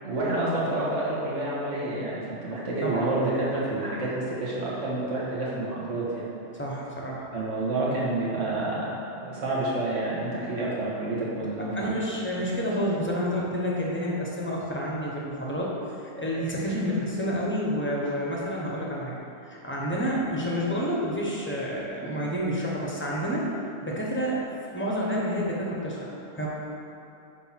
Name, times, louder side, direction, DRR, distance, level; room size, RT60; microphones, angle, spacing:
voice 1, 0.0-6.3 7.3-11.7, right 2 dB, 90° right, -6 dB, 1.7 m, -29 dB
voice 2, 6.6-7.3 11.7-15.7 16.2-19.2 19.5-23.4 23.8-24.4 24.7-26.5, equal, 10° left, -4 dB, 0.9 m, -29 dB
5.7 x 3.6 x 5.8 m, 2.8 s
omnidirectional pair, 1.2 m